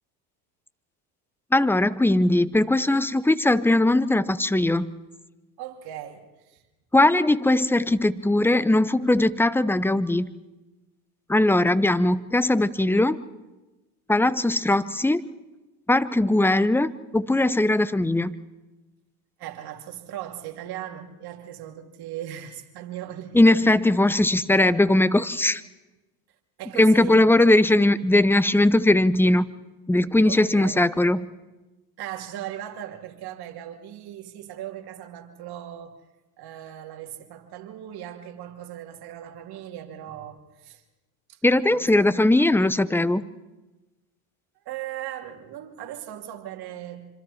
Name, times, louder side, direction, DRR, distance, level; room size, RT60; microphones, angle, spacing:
voice 1, 1.5-4.9 6.9-10.3 11.3-13.2 14.1-15.3 15.9-18.3 23.3-25.6 26.8-29.4 29.9-31.2 41.4-43.2, left 1 dB, 5° left, 0.8 m, -20 dB
voice 2, 5.6-6.6 11.5-11.6 19.4-23.5 26.6-27.3 30.2-30.8 32.0-36.0 36.4-40.8 41.3-41.4 41.7-41.9 44.6-47.1, right 11 dB, 60° right, 2.9 m, -38 dB
26.0 x 26.0 x 4.3 m
supercardioid pair, 90°, 44 cm